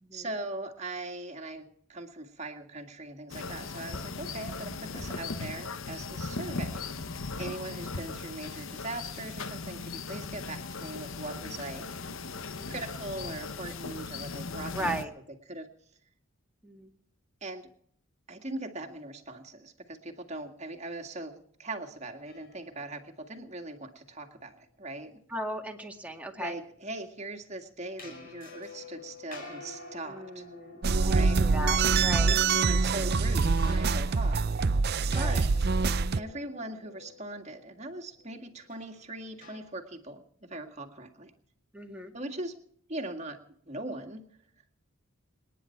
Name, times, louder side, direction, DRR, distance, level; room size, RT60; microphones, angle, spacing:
voice 1, 0.1-6.8 7.4-11.9 12.7-15.7 17.4-17.7 18.3-25.2 26.4-30.4 31.1-31.5 32.2-34.7 35.1-35.7 36.2-41.3 42.1-42.6 42.9-43.4 43.7-44.3, right 2 dB, 30° right, 4 dB, 2.0 m, -40 dB
sound 1, 3.3-15.0, left 4 dB, 70° left, 1.0 m, -38 dB
voice 2, 14.7-15.1 16.6-16.9 25.3-26.5 30.1-32.3 35.1-35.4 41.7-42.1, equal, 5° right, 2 dB, 2.1 m, -37 dB
sound 2, 22.2-24.3 28.0-39.6, left 3 dB, 45° left, 5.5 m, -50 dB
sound 3, 30.8-36.2, right 4 dB, 50° right, 0.5 m, -25 dB
28.0 x 10.0 x 4.5 m, 0.65 s
head